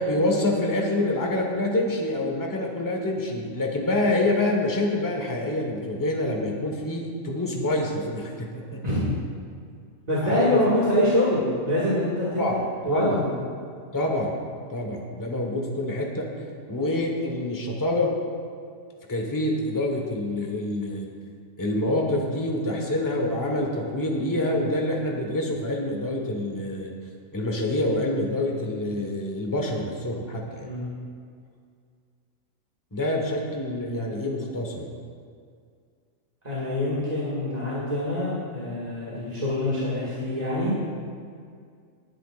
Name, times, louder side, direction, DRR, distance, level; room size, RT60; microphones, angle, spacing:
voice 1, 0.0-8.8 10.2-10.6 12.4-12.6 12.9-13.2 13.9-14.4 14.7-16.3 16.7-18.1 19.1-21.1 21.6-26.9 27.3-30.7 32.9-34.9, left 1 dB, 15° left, 0 dB, 1.3 m, -26 dB
voice 2, 10.1-12.5 12.9-13.3 30.6-30.9 36.4-40.8, left 1 dB, 30° right, -9 dB, 2.2 m, -25 dB
18.5 x 10.5 x 2.5 m, 2.2 s
omnidirectional pair, 1.4 m